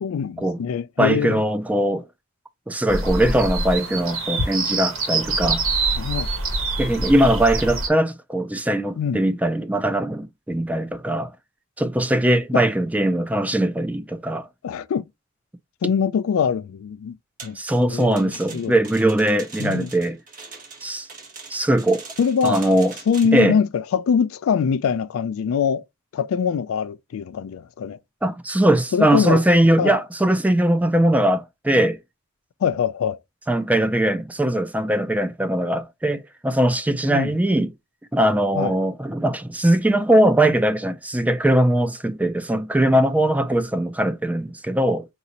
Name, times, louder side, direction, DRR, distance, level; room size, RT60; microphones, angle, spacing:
voice 1, 0.0-1.4 6.0-6.3 9.0-9.2 12.5-12.6 14.6-15.0 15.8-17.2 17.4-17.6 17.9-18.7 19.6-19.9 22.2-22.6 23.1-25.8 26.1-28.0 28.9-29.4 29.8-30.0 32.6-33.2 37.1-37.3 38.5-38.7, left 7 dB, 80° left, 0.3 m, -23 dB
voice 2, 1.0-2.0 2.7-5.6 6.8-11.3 11.8-14.5 17.6-20.2 20.8-21.1 21.5-22.0 22.4-22.9 23.3-23.6 28.2-32.0 33.5-37.7 38.1-45.1, right 1 dB, 5° right, 0.3 m, -20 dB
sound 1, 2.9-7.9, right 3 dB, 75° right, 1.2 m, -25 dB
sound 2, 17.4-23.5, right 4 dB, 40° right, 1.1 m, -42 dB
4.9 x 2.7 x 2.8 m
head